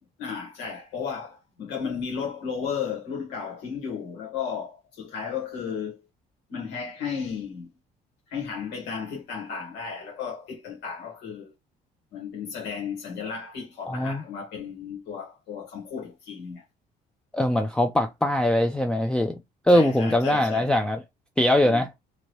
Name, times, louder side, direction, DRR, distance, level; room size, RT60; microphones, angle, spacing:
voice 1, 0.2-6.0 6.5-7.7 8.3-11.5 12.1-16.6 19.7-20.7 21.6-21.9, left 6 dB, 85° left, 1.4 m, -34 dB
voice 2, 13.9-14.2 17.3-19.3 19.7-21.0 21.4-21.9, left 1 dB, 5° left, 0.4 m, -22 dB
3.0 x 2.6 x 2.8 m
cardioid pair, 110°, 17 cm